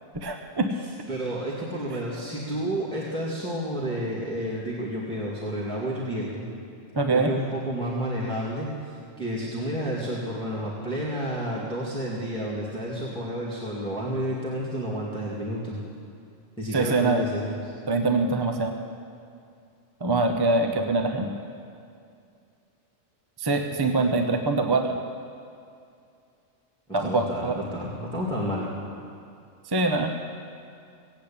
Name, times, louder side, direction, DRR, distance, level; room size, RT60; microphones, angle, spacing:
voice 1, 0.1-0.7 6.9-7.3 16.7-17.2 17.9-18.8 20.0-21.3 23.4-25.0 26.9-27.6 29.7-30.1, right 3 dB, 20° right, 3 dB, 0.7 m, -24 dB
voice 2, 1.1-6.4 7.1-15.8 16.6-17.5 26.9-28.6, equal, 5° left, -6 dB, 2.1 m, -30 dB
17.5 x 8.3 x 8.7 m, 2.4 s
omnidirectional pair, 1.3 m